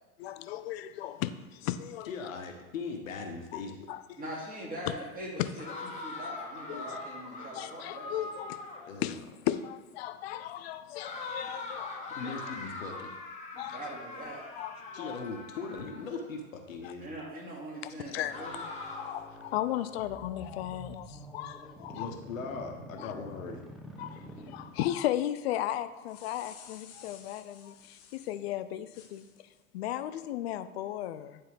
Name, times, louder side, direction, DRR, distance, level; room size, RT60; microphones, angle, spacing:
voice 1, 0.2-2.1 3.5-3.6 3.9-4.2 4.9-5.0 5.4-5.8 6.7-6.8 7.5-12.0 12.2-12.3 12.9-13.0 13.6-13.8 14.6-15.2 16.8-16.9 17.8-22.2 23.0-23.1 24.0-29.3 29.7-31.4, left 12 dB, 50° left, 12 dB, 0.5 m, -36 dB
voice 2, 2.0-3.7 8.9-9.1 12.1-13.1 14.9-17.1 21.9-23.6, left 4 dB, 70° left, 3 dB, 1.1 m, -39 dB
voice 3, 4.2-5.3 5.9-8.3 11.4-11.5 13.5-14.4 17.0-18.6, right 1 dB, 20° right, -4 dB, 2.5 m, -42 dB
sound 1, 5.6-9.0 11.0-16.3 18.3-19.3, left 3 dB, 15° left, 1.2 m, -42 dB
sound 2, 18.2-25.2, equal, ahead, 0.5 m, -48 dB
sound 3, 25.8-28.4 28.9-29.6, left 8 dB, 35° left, 0.9 m, -53 dB
9.7 x 4.4 x 3.4 m, 1.2 s
figure-of-eight pair, 95°, 42 cm